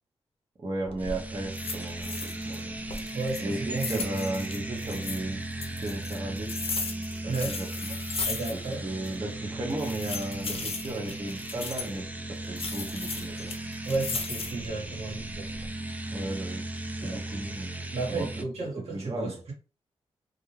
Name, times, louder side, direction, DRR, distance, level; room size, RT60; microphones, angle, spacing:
voice 1, 0.6-2.7 3.4-6.5 7.2-7.9 8.5-12.1 12.5-13.6 16.1-16.6 17.0-18.3 18.8-19.4, right 2 dB, 40° right, 0.8 m, -35 dB
sound 1, 0.8-1.2 1.5-2.6 2.9-5.2 5.6-8.8 9.0-9.1 9.7-12.0 12.6-14.7 15.2-15.7, left 4 dB, 60° left, 0.6 m, -36 dB
sound 2, 1.0-18.4, right 2 dB, 15° right, 0.4 m, -36 dB
voice 2, 3.1-4.3 7.3-7.6 8.3-8.8 13.8-15.5 17.0-17.2 17.9-19.5, right 3 dB, 75° right, 1.2 m, -33 dB
2.4 x 2.2 x 3.1 m
cardioid pair, 60°, 11 cm